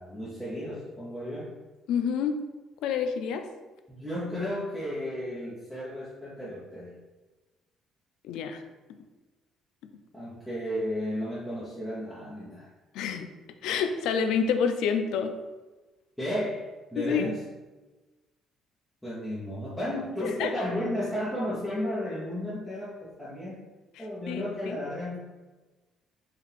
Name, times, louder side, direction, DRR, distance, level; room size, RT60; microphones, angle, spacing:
voice 1, 0.0-1.6 3.9-6.9 10.1-12.7 16.2-17.4 19.0-23.6 24.0-25.2, left 1 dB, 5° left, -10 dB, 0.8 m, -33 dB
voice 2, 1.9-2.4 2.8-3.5 8.2-8.6 12.9-13.3 13.6-15.3 17.0-17.2 20.2-20.5 24.0-24.8, left 6 dB, 85° left, 7 dB, 0.4 m, -28 dB
4.6 x 2.4 x 3.4 m, 1.2 s
cardioid pair, 135°, 0 cm